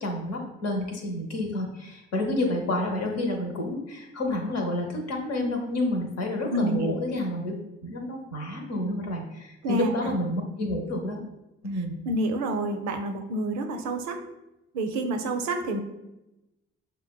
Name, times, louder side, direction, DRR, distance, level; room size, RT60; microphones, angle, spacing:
voice 1, 0.0-7.6 7.8-11.2 11.6-12.0, left 1 dB, 55° left, 2 dB, 0.8 m, -29 dB
voice 2, 6.5-6.9 9.6-10.1 12.1-14.2 14.7-15.8, right 1 dB, 65° right, 5 dB, 0.5 m, -28 dB
5.1 x 2.2 x 2.2 m, 0.92 s
hypercardioid pair, 45°, 30 cm